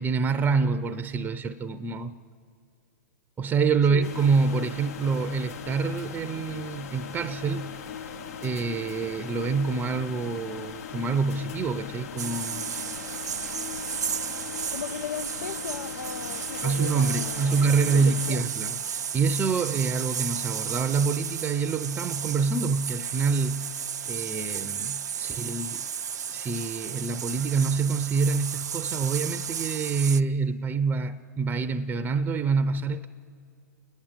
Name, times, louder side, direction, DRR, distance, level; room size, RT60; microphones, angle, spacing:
voice 1, 0.0-2.1 3.4-7.7 8.4-12.9 16.6-23.7 24.1-25.9 26.3-33.1, right 5 dB, 20° right, 0.6 m, -26 dB
sound 1, 4.0-18.3, left 7 dB, 65° left, 0.9 m, -39 dB
sound 2, 12.2-30.2, right 8 dB, 85° right, 0.6 m, -33 dB
voice 2, 14.7-18.5, left 7 dB, 85° left, 0.5 m, -37 dB
29.5 x 10.5 x 8.8 m
hypercardioid pair, 115°, 9 cm